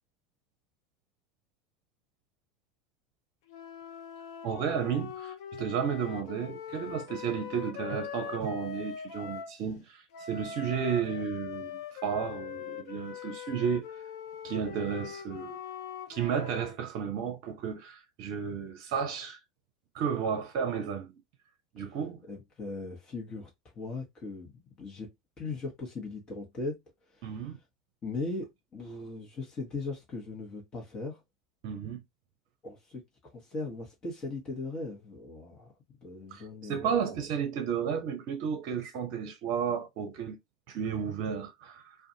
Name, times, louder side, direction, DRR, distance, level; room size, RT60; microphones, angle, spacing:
sound 1, 3.5-9.6 10.1-16.8, left 8 dB, 65° left, 0.5 m, -41 dB
voice 1, 4.4-13.9 14.4-15.6 16.1-19.4 19.9-21.1 21.7-22.2 27.2-27.6 31.6-32.0 36.3-40.4 40.7-42.0, right 7 dB, 55° right, 0.6 m, -33 dB
voice 2, 22.3-23.5 23.7-26.8 27.1-27.4 28.0-31.2 32.6-35.7 36.0-36.9, left 3 dB, 35° left, 1.0 m, -39 dB
2.4 x 2.3 x 2.7 m
figure-of-eight pair, 80°, 2 cm